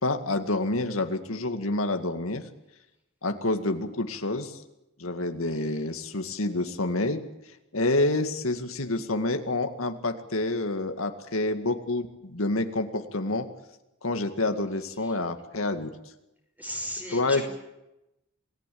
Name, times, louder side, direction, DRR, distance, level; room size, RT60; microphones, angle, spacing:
voice 1, 0.0-2.4 3.2-4.6 5.0-7.2 7.7-13.5 14.0-15.9 17.1-17.4, left 2 dB, 85° left, 6 dB, 2.1 m, -28 dB
voice 2, 16.6-17.4, equal, 10° right, 3 dB, 5.5 m, -35 dB
27.5 x 19.0 x 8.7 m, 0.91 s
head